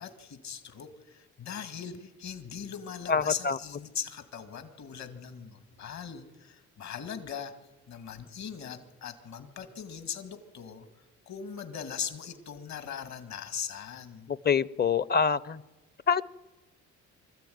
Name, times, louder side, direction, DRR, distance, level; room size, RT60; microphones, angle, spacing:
voice 1, 0.0-7.5 7.9-14.3, left 8 dB, 65° left, 8 dB, 2.2 m, -40 dB
voice 2, 3.1-3.6 14.3-15.6 16.1-16.2, left 6 dB, 30° left, 19 dB, 0.6 m, -25 dB
24.5 x 14.0 x 9.4 m, 1.2 s
cardioid pair, 90°, 30 cm